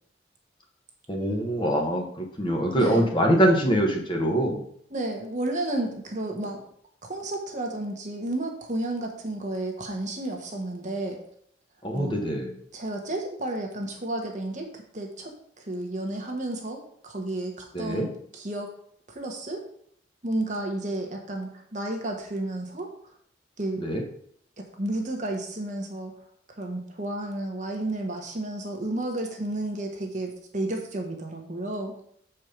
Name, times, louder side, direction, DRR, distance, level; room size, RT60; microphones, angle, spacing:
voice 1, 1.1-4.6 11.8-12.5 17.7-18.1 23.8-24.0, equal, 25° left, 1 dB, 1.2 m, -24 dB
voice 2, 2.7-3.1 4.9-6.6 7.0-11.2 11.9-12.2 12.7-15.3 15.6-18.7 19.1-19.6 20.2-22.9 23.6-23.9 24.6-26.1 26.5-31.9, right 1 dB, 40° right, 2 dB, 1.2 m, -32 dB
7.2 x 4.6 x 5.1 m, 0.67 s
head